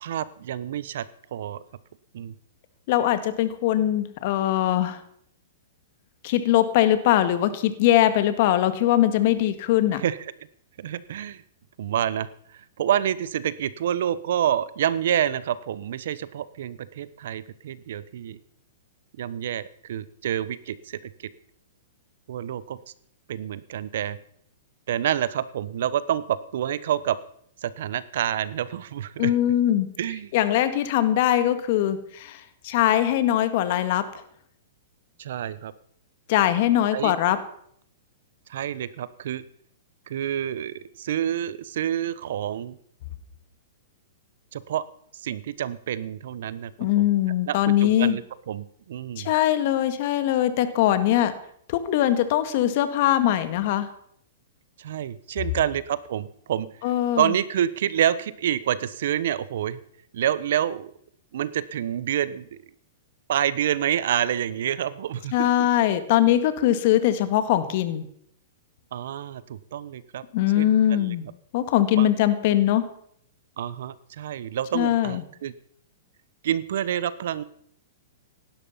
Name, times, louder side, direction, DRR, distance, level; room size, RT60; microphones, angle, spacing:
voice 1, 0.0-1.6 2.1-2.3 9.9-10.2 10.8-11.4 11.8-18.4 19.2-21.0 22.3-22.8 23.3-24.2 24.9-27.2 27.6-29.3 30.0-30.3 35.2-35.7 36.9-37.2 38.5-39.4 40.1-42.8 44.5-44.8 45.2-47.0 47.5-49.3 54.8-56.7 57.2-59.8 60.1-60.9 61.3-62.6 63.3-65.7 68.9-70.2 70.6-71.3 71.9-72.1 73.6-75.5 76.4-77.4, right 10 dB, 65° right, 17 dB, 1.0 m, -28 dB
voice 2, 2.9-5.0 6.2-10.0 29.2-29.9 30.3-34.0 36.3-37.4 46.8-48.2 49.2-51.3 51.7-53.9 56.8-57.3 65.3-68.0 70.3-71.2 71.5-72.9 74.7-75.2, left 12 dB, 55° left, 11 dB, 1.8 m, -21 dB
17.0 x 12.0 x 5.7 m, 0.67 s
hypercardioid pair, 130°, 0 cm